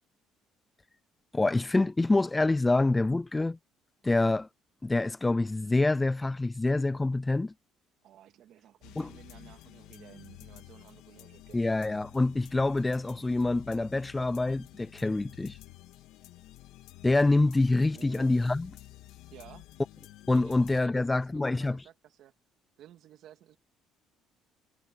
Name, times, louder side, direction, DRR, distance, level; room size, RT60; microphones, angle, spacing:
voice 1, 1.3-3.6 4.0-4.5 4.8-7.5 9.0-9.1 11.5-15.6 17.0-18.7 20.3-21.8, left 2 dB, 15° left, 0.3 m, -26 dB
voice 2, 8.0-11.6 17.9-18.5 19.3-19.7 20.3-22.3 22.8-23.6, right 11 dB, 65° right, 2.1 m, -53 dB
sound 1, 8.8-20.8, left 15 dB, 80° left, 1.9 m, -51 dB
cardioid pair, 110°, 0 cm